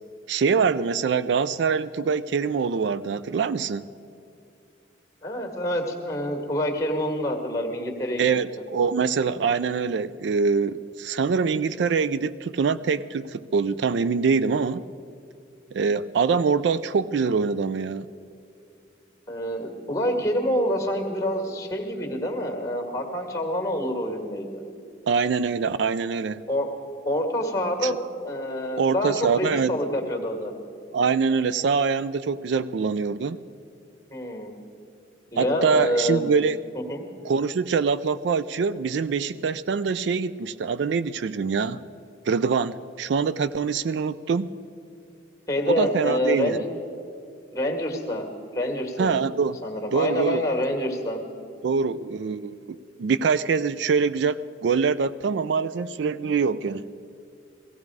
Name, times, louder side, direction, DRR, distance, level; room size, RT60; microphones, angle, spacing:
voice 1, 0.3-3.9 8.2-14.8 15.7-18.1 25.1-26.4 27.8-27.9 28.8-29.7 30.9-33.4 35.4-36.6 37.2-41.8 42.3-44.5 45.7-46.6 49.0-49.6 49.9-50.4 51.6-56.9, right 5 dB, 65° right, 15 dB, 0.3 m, -24 dB
voice 2, 5.2-8.2 9.2-9.3 19.3-24.6 26.5-26.7 27.0-30.5 34.1-34.6 35.3-36.3 36.7-37.1 45.5-46.7 47.5-48.3 48.5-49.1 49.6-51.2, equal, 15° left, 3 dB, 1.8 m, -27 dB
17.0 x 16.0 x 4.8 m, 2.5 s
head